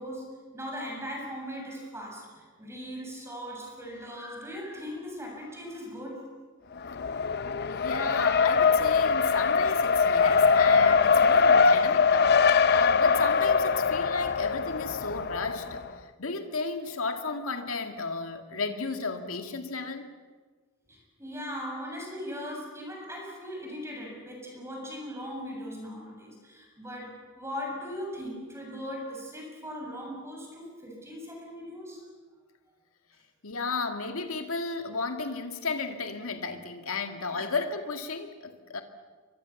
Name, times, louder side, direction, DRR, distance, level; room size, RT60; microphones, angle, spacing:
voice 1, 0.0-6.3 20.9-32.0 37.3-37.5, equal, 15° right, 7.1 m, -39 dB
Race car auto racing, 6.8-15.9, left 5 dB, 50° left, 0.7 m, -22 dB
voice 2, 7.7-20.1 33.4-38.8, left 4 dB, 85° left, 2.1 m, -33 dB
29.0 x 23.5 x 7.2 m
head